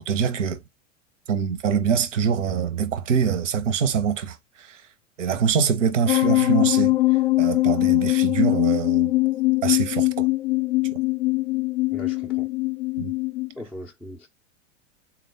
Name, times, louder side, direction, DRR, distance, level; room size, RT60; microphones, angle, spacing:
voice 1, 0.1-0.6 1.3-4.8 5.2-7.0 7.4-9.1 9.6-10.3 13.0-13.1, right 7 dB, 70° right, 0.9 m, -24 dB
sound 1, 6.1-13.5, left 21 dB, 55° left, 0.5 m, -22 dB
voice 2, 11.9-12.5 13.6-14.3, equal, ahead, 0.4 m, -39 dB
3.7 x 2.4 x 3.4 m
figure-of-eight pair, 95°, 38 cm